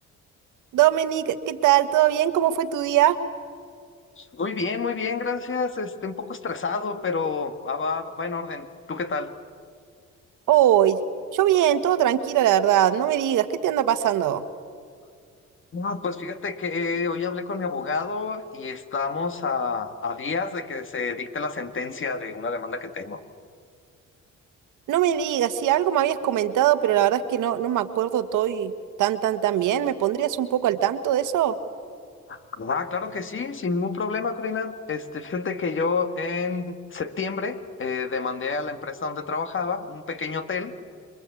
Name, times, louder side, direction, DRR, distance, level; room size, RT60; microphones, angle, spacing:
voice 1, 0.7-3.2 10.5-11.0 11.3-14.4 24.9-28.7 29.0-31.5, right 12 dB, 85° right, 11 dB, 1.5 m, -21 dB
voice 2, 4.2-9.3 15.7-23.2 32.3-40.7, left 4 dB, 40° left, 9 dB, 2.1 m, -29 dB
27.5 x 22.5 x 8.5 m, 2.2 s
cardioid pair, 90°, 30 cm